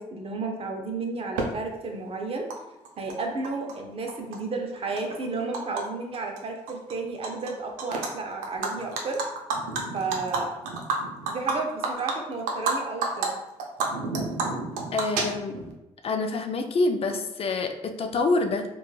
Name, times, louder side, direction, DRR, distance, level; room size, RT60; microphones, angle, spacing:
voice 1, 0.0-2.5 3.0-9.2 9.9-10.6 11.2-13.3, right 3 dB, 45° right, 2 dB, 0.6 m, -32 dB
Animal, 1.4-1.5 2.5-2.6 2.8-3.7 4.1-5.8 6.1-6.4 6.7-7.5 7.8-8.1 8.4-12.7 13.0-13.3 13.6-15.7, right 4 dB, 90° right, 0.4 m, -29 dB
voice 2, 14.9-15.6 16.0-18.7, left 3 dB, 45° left, 5 dB, 0.4 m, -26 dB
2.9 x 2.3 x 2.3 m, 0.98 s
supercardioid pair, 60°, 14 cm